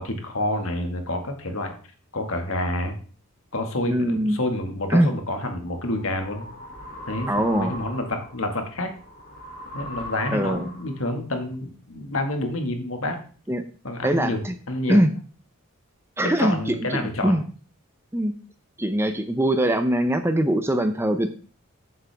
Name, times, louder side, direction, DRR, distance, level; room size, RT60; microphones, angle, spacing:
voice 1, 0.0-1.7 2.1-2.9 3.5-6.5 7.1-8.9 9.7-13.2 13.8-14.4 14.7-15.0 16.2-17.4, left 1 dB, 65° left, 4 dB, 1.9 m, -28 dB
voice 2, 3.9-4.4 4.9-5.1 7.3-7.8 10.3-10.7 13.5-13.6 14.0-14.5 14.9-15.1 16.2-17.4 18.1-18.3 18.8-21.3, right 1 dB, 10° right, 8 dB, 0.6 m, -22 dB
sound 1, 5.6-11.1, left 1 dB, 40° left, 2.5 m, -39 dB
14.0 x 7.6 x 3.5 m, 0.41 s
head